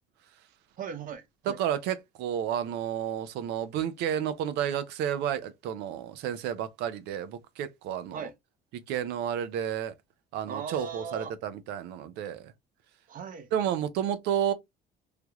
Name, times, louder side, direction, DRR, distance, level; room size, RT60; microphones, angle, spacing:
voice 1, 0.8-1.6 8.1-8.3 10.5-11.3 13.1-13.5, right 6 dB, 55° right, 0.8 m, -38 dB
voice 2, 1.5-8.3 8.7-9.9 10.3-12.5 13.5-14.5, right 9 dB, 90° right, 0.6 m, -31 dB
3.3 x 2.3 x 2.9 m
cardioid pair, 110°, 17 cm